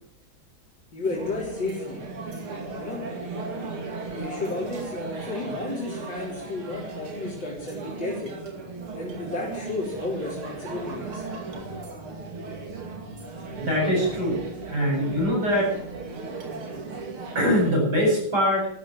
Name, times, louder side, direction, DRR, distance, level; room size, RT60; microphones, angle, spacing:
voice 1, 0.9-2.0 2.8-3.0 4.1-8.3 8.9-11.2, left 3 dB, 60° left, -4 dB, 4.4 m, -32 dB
sound 1, 1.0-17.7, right 3 dB, 85° right, 3.5 m, -36 dB
voice 2, 13.6-14.4 14.7-15.8 17.3-18.7, equal, 50° right, -2 dB, 8.5 m, -23 dB
13.5 x 12.5 x 7.8 m, 0.69 s
omnidirectional pair, 2.3 m